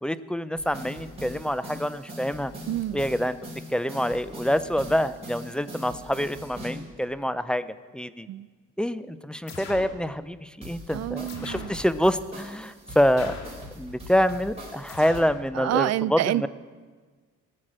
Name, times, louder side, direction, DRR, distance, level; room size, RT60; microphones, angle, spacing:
voice 1, 0.0-2.5 2.9-3.4 3.7-8.3 8.8-13.3 13.8-16.5, equal, 5° left, 14 dB, 0.5 m, -26 dB
sound 1, 0.6-6.9 10.6-15.2, equal, 20° right, 4.2 m, -42 dB
voice 2, 2.7-3.0 8.3-8.5 10.9-11.7 15.6-16.5, right 14 dB, 60° right, 19 dB, 0.4 m, -27 dB
sound 2, 9.5-10.0 11.3-11.8 13.2-13.7 14.9-15.4, left 4 dB, 60° left, 1.9 m, -40 dB
17.5 x 6.5 x 7.5 m, 1.4 s
cardioid pair, 90°, 30 cm